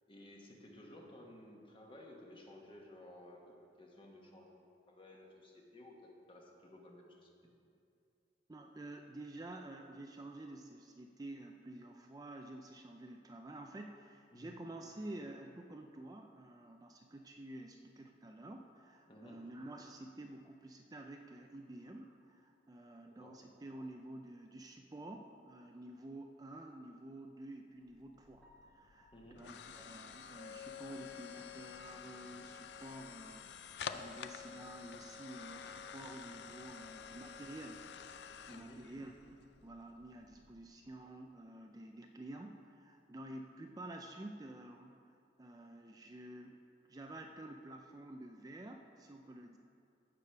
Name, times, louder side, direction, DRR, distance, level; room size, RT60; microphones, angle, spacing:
voice 1, 0.1-7.3 14.3-14.6 19.1-19.5 23.0-23.5 29.1-29.6 38.5-38.9, left 1 dB, 30° left, 0 dB, 1.3 m, -56 dB
voice 2, 8.5-37.8 38.2-44.9 45.4-46.6 46.9-49.6, right 1 dB, 20° right, 3 dB, 0.4 m, -50 dB
sound 1, 27.9-40.9, left 7 dB, 65° left, 0.4 m, -50 dB
Piano, 28.4-32.4 32.7-32.9 33.3-33.4 33.8-33.9 37.0-37.1 45.6-45.8, equal, 10° left, 1.7 m, -71 dB
15.0 x 5.0 x 5.7 m, 2.5 s
head